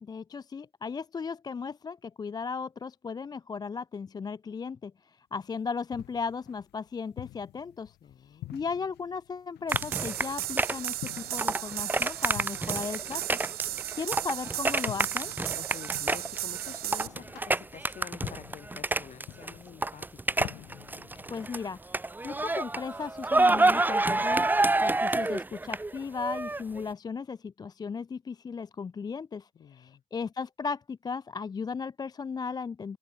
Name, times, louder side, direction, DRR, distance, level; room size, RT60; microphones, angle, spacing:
voice 1, 0.0-8.0 8.2-13.4 13.9-15.3 21.3-21.8 22.2-33.0, left 5 dB, 25° left, 0.5 m, -36 dB
sound 1, 5.4-21.3, left 16 dB, 80° left, 2.3 m, -47 dB
voice 2, 8.0-8.7 15.5-20.4 29.5-30.0, left 8 dB, 45° left, 2.0 m, -48 dB
sound 2, 9.7-19.5 19.8-21.6 21.9-26.8, right 2 dB, 10° right, 0.9 m, -28 dB
sound 3, 9.7-17.1, right 16 dB, 70° right, 0.5 m, -35 dB
cardioid pair, 110°, 17 cm